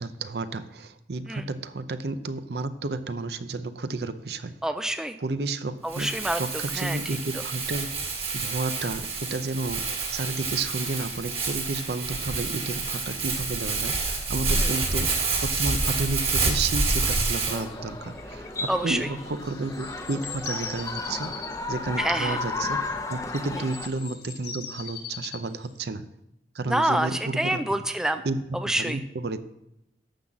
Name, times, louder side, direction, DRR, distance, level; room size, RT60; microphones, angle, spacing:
voice 1, 0.0-4.5 5.2-6.1 6.4-7.9 8.3-22.8 23.1-26.1 26.5-27.8 28.2-29.4, right 3 dB, 65° right, 11 dB, 0.6 m, -31 dB
voice 2, 4.6-5.2 5.8-6.4 6.7-7.0 14.6-14.7 18.7-19.0 22.0-22.4 26.7-28.2 28.6-29.0, right 1 dB, 5° right, 9 dB, 0.3 m, -27 dB
Crumpling crinkling, 5.9-17.6, right 3 dB, 35° right, 1.9 m, -28 dB
sound 1, 7.9-25.8, left 6 dB, 70° left, 1.7 m, -45 dB
sound 2, 17.5-23.9, left 3 dB, 20° left, 0.8 m, -34 dB
11.5 x 4.0 x 7.4 m, 0.84 s
head